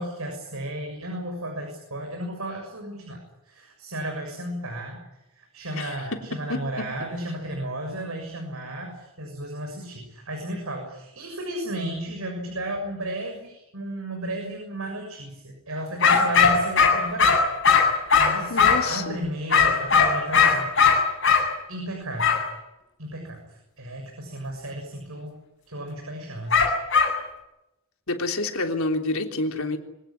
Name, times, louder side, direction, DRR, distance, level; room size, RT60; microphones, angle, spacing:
voice 1, 0.0-5.0 5.4-17.4 18.2-20.7 21.7-22.4 23.0-25.4 25.7-26.7, right 1 dB, 85° right, 2 dB, 6.8 m, -34 dB
sound 1, 16.0-18.9 19.5-21.5 22.2-22.4 26.5-27.2, left 5 dB, 60° left, 8.0 m, -19 dB
voice 2, 18.5-19.2 28.1-29.8, left 2 dB, 80° left, 4 dB, 3.4 m, -28 dB
25.5 x 18.0 x 10.0 m, 0.92 s
head